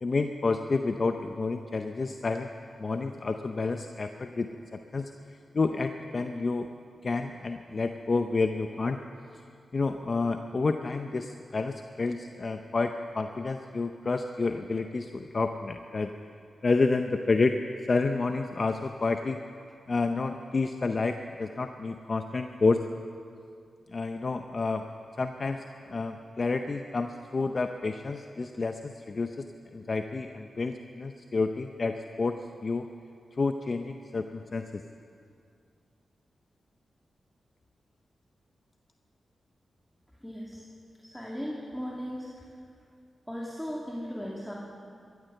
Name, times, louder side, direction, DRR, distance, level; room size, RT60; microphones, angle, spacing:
voice 1, 0.0-2.5 2.8-5.1 5.5-6.7 7.0-9.0 9.3-9.4 9.7-16.1 16.6-17.5 17.9-19.4 19.9-22.8 23.9-24.9 25.2-29.4 29.7-32.9 33.3-34.8, left 3 dB, 50° left, 7 dB, 0.6 m, -29 dB
voice 2, 40.2-40.6 41.0-42.3 43.3-44.5, equal, 5° left, -4 dB, 2.4 m, -37 dB
13.5 x 13.5 x 6.6 m, 2.3 s
cardioid pair, 50°, 0 cm